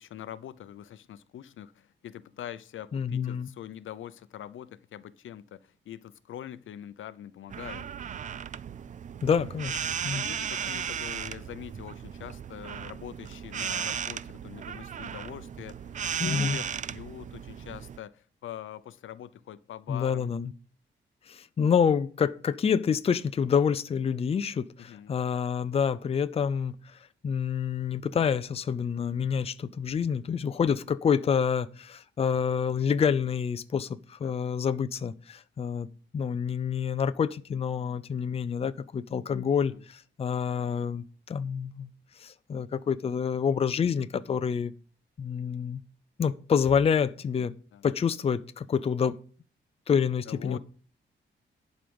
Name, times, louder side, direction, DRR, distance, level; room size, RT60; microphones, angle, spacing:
voice 1, 0.0-7.9 10.1-20.3 24.8-25.1 34.2-34.3 39.7-39.8 47.7-47.9 50.3-50.6, left 10 dB, 90° left, 0.7 m, -43 dB
voice 2, 2.9-3.5 9.2-10.3 10.5-10.7 16.2-16.6 19.9-20.5 21.3-35.9 36.1-41.9 42.2-44.7 45.2-45.8 46.2-47.5 47.8-49.2 49.9-50.6, left 7 dB, 30° left, 0.5 m, -28 dB
sound 1, 7.5-18.0, right 8 dB, 40° right, 0.4 m, -36 dB
11.0 x 5.1 x 7.0 m
wide cardioid pair, 155°, 20 cm